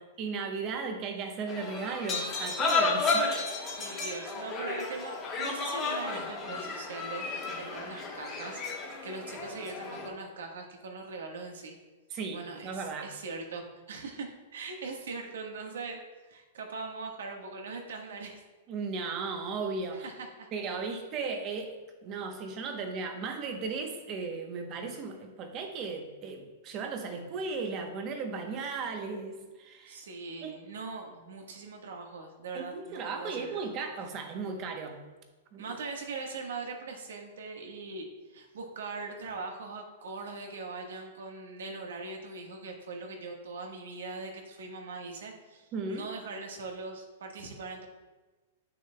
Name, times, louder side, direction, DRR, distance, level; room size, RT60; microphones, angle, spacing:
voice 1, 0.2-3.3 12.1-13.1 18.7-20.1 20.5-21.7 22.0-30.0 30.4-30.6 32.5-35.0 35.5-35.8 45.7-46.1, right 4 dB, 30° right, 5 dB, 0.9 m, -36 dB
sound 1, 1.5-10.1, left 3 dB, 25° left, 1.3 m, -32 dB
voice 2, 3.1-8.6 9.0-11.8 12.3-18.4 19.9-20.5 29.9-33.7 35.6-47.9, right 3 dB, 90° right, 2 dB, 1.3 m, -41 dB
8.5 x 6.6 x 2.2 m, 1.2 s
supercardioid pair, 160°, 0 cm